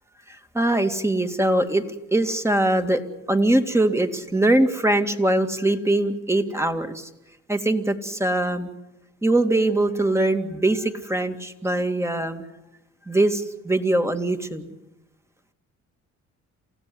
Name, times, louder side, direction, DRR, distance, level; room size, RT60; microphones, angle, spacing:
voice 1, 0.3-3.0 3.3-7.1 7.5-8.7 9.2-12.4 13.1-14.7, right 1 dB, 10° right, 6 dB, 2.3 m, -22 dB
28.5 x 16.0 x 7.9 m, 0.97 s
cardioid pair, 90°, 30 cm